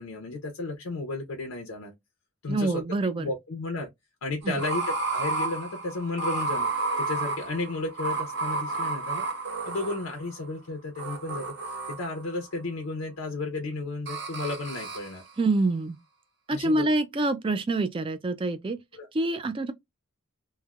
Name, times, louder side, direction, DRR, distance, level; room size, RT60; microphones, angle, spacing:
voice 1, 0.0-1.9 2.4-2.8 3.2-3.9 4.2-4.8 5.1-9.3 9.7-15.2 16.5-16.9 18.9-19.1, left 2 dB, 90° left, 0.6 m, -33 dB
voice 2, 2.5-3.3 4.4-4.6 15.4-16.0 16.5-18.8 19.1-19.7, right 2 dB, 25° right, 0.3 m, -26 dB
sound 1, 4.4-10.5 11.0-12.3 14.1-15.2, right 3 dB, 55° right, 0.8 m, -31 dB
3.1 x 2.1 x 2.3 m
head